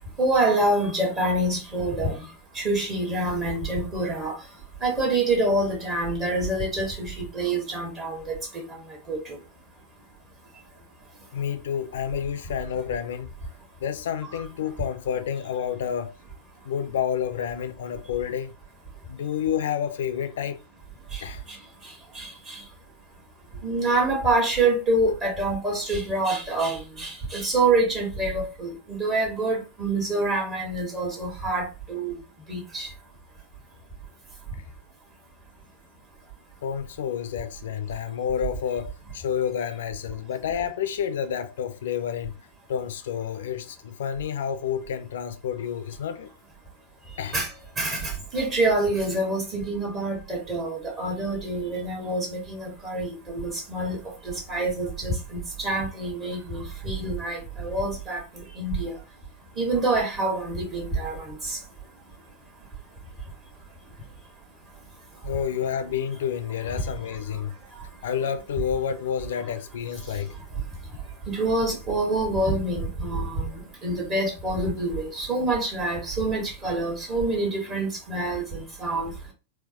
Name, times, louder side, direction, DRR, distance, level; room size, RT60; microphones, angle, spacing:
voice 1, 0.2-2.2 2.5-4.4 4.8-8.6 9.1-9.4 14.3-14.4 21.1-21.2 22.1-22.6 23.6-32.1 32.5-32.9 47.3-47.5 47.8-54.0 54.2-58.9 59.6-61.6 71.3-73.5 73.8-79.1, right 2 dB, 30° right, 1.5 m, -26 dB
voice 2, 11.3-13.3 13.8-16.1 16.6-18.5 19.1-20.6 21.2-21.4 34.5-34.6 36.6-42.4 42.7-46.3 47.2-47.4 65.2-67.5 68.0-70.3, left 8 dB, 60° left, 0.5 m, -29 dB
4.2 x 2.1 x 2.8 m
figure-of-eight pair, 95°, 0 cm